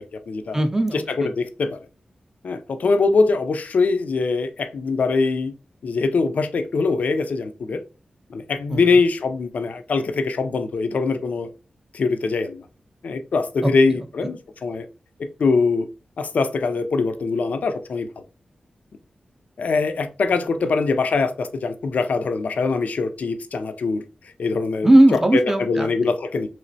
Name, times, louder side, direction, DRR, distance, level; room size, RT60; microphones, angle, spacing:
voice 1, 0.0-0.6 0.9-1.8 2.4-5.5 5.8-7.8 8.3-11.5 11.9-12.6 13.0-14.9 15.4-15.9 16.2-18.1 19.6-24.0 24.4-24.9 25.6-26.5, left 4 dB, 65° left, 9 dB, 0.3 m, -22 dB
voice 2, 0.5-1.3 8.7-8.8 13.6-13.7 14.2-14.3 24.8-26.1, right 1 dB, 20° right, 6 dB, 0.4 m, -18 dB
3.1 x 2.9 x 2.6 m, 0.32 s
wide cardioid pair, 130°, 3 cm